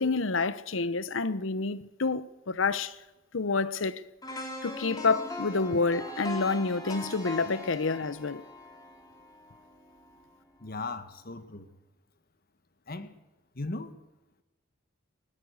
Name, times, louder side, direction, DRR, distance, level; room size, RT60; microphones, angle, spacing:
voice 1, 0.0-3.0 3.3-4.1 4.6-8.4, left 4 dB, 75° left, 0.8 m, -28 dB
sound 1, 4.2-10.2 10.6-10.8, left 2 dB, 20° left, 3.5 m, -41 dB
voice 2, 10.6-11.7 12.9-13.1 13.5-13.9, left 3 dB, 50° left, 1.4 m, -37 dB
20.0 x 18.5 x 8.0 m
head